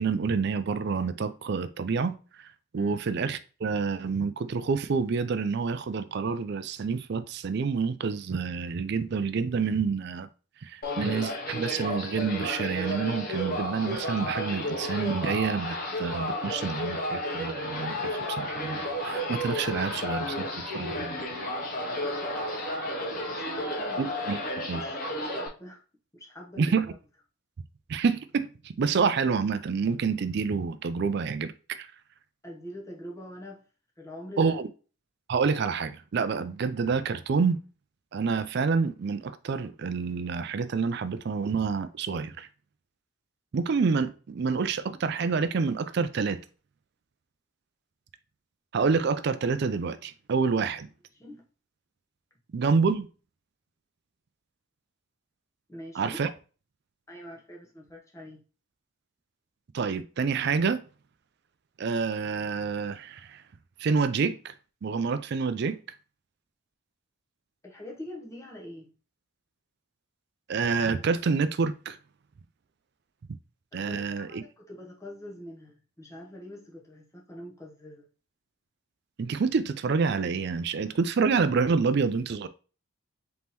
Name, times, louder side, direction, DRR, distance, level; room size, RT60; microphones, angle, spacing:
voice 1, 0.0-2.1 2.7-10.3 10.6-20.5 20.7-21.2 24.0-24.4 24.7-24.8 26.6-26.9 27.9-31.9 34.4-34.7 35.3-37.6 38.1-42.5 43.5-46.4 48.7-50.9 52.5-53.1 56.0-56.3 59.7-60.8 61.8-63.4 63.8-64.5 64.8-65.8 70.5-72.0 73.7-74.4 79.2-82.5, right 5 dB, 50° right, 0.3 m, -28 dB
sound 1, 10.8-25.5, left 1 dB, 40° left, 0.8 m, -32 dB
voice 2, 23.4-24.1 24.8-25.0 25.3-25.8 26.1-27.0 32.4-33.7 34.0-34.6 51.1-51.4 55.7-56.2 57.1-58.4 67.6-68.9 73.7-78.1, left 1 dB, 15° left, 0.9 m, -44 dB
4.0 x 3.6 x 2.9 m
head